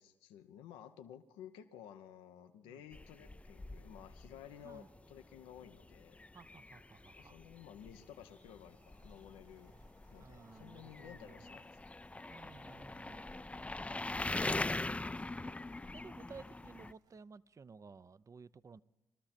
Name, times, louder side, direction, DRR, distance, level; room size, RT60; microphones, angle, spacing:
voice 1, 0.0-6.2 7.2-9.7 10.1-12.0, left 10 dB, 85° left, 0.7 m, -54 dB
sound 1, 2.9-16.9, left 2 dB, 15° left, 0.4 m, -43 dB
voice 2, 6.3-7.4 10.2-11.4 12.3-13.7 14.1-15.6 15.9-18.8, right 5 dB, 35° right, 0.6 m, -56 dB
sound 2, 8.0-17.2, right 4 dB, 65° right, 4.0 m, -75 dB
21.5 x 13.5 x 4.3 m
hypercardioid pair, 50°, 9 cm